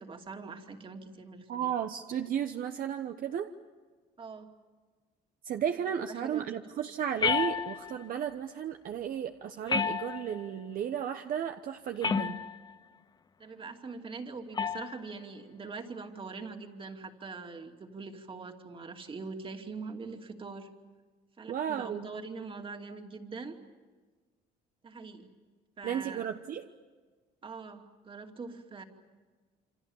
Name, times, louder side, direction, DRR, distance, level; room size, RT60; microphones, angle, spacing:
voice 1, 0.0-1.7 4.2-4.5 6.1-6.5 13.4-20.7 21.4-23.6 24.8-25.3 25.8-26.3 27.4-28.8, right 4 dB, 30° right, 4 dB, 2.8 m, -43 dB
voice 2, 1.5-3.5 5.4-12.4 21.5-22.0 25.8-26.7, right 9 dB, 55° right, 6 dB, 1.2 m, -34 dB
sound 1, 7.2-8.1 9.7-10.5 12.0-12.7 14.6-15.0, left 6 dB, 25° left, 0.8 m, -30 dB
28.5 x 25.5 x 7.3 m, 1.4 s
cardioid pair, 110°, 17 cm